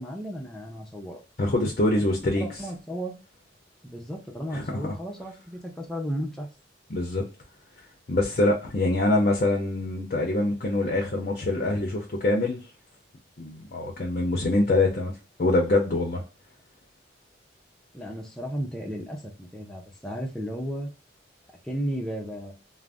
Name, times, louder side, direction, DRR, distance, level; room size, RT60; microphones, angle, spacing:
voice 1, 0.0-1.2 2.0-2.1 2.4-3.1 3.8-6.5 17.9-20.9 21.6-22.5, equal, 5° left, 0.5 m, -34 dB
voice 2, 1.4-2.4 4.5-4.9 6.9-7.2 8.1-12.6 13.4-15.1 15.4-16.2, left 2 dB, 50° left, 0.6 m, -24 dB
2.5 x 2.0 x 3.3 m
head